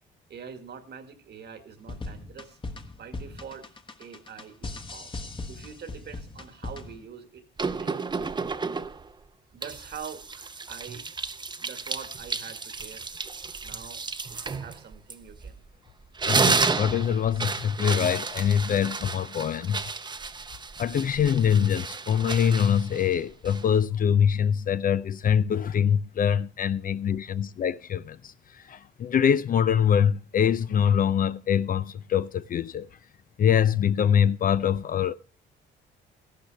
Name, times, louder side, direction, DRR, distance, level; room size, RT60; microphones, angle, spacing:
voice 1, 0.3-2.6 2.9-3.7 4.0-7.9 9.5-13.1 13.6-15.6, right 7 dB, 55° right, 1.6 m, -44 dB
sound 1, 1.8-7.1, left 2 dB, 25° left, 1.2 m, -38 dB
Hyacinthe hand washing paper towel trashing edited, 7.6-9.1 9.6-15.7 16.0-23.8, right 4 dB, 20° right, 0.7 m, -31 dB
voice 2, 16.3-19.9 20.8-32.9 33.4-35.2, left 8 dB, 45° left, 0.4 m, -24 dB
13.5 x 12.0 x 3.2 m
cardioid pair, 90°, 20 cm